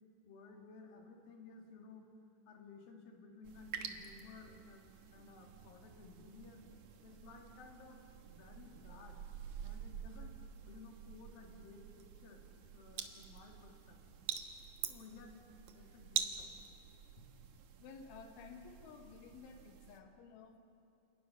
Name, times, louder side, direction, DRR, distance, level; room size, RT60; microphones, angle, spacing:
voice 1, 0.2-2.1 2.5-6.6 7.0-8.0 8.3-9.2 9.6-10.4 10.6-12.4 12.7-14.2 14.8-15.4 15.7-16.5 17.2-17.3, left 4 dB, 55° left, 1 dB, 3.8 m, -56 dB
sound 1, 3.4-20.0, right 8 dB, 75° right, 1.7 m, -47 dB
voice 2, 17.8-20.6, left 5 dB, 85° left, 4 dB, 4.0 m, -54 dB
28.5 x 28.5 x 5.8 m, 2.6 s
omnidirectional pair, 5.3 m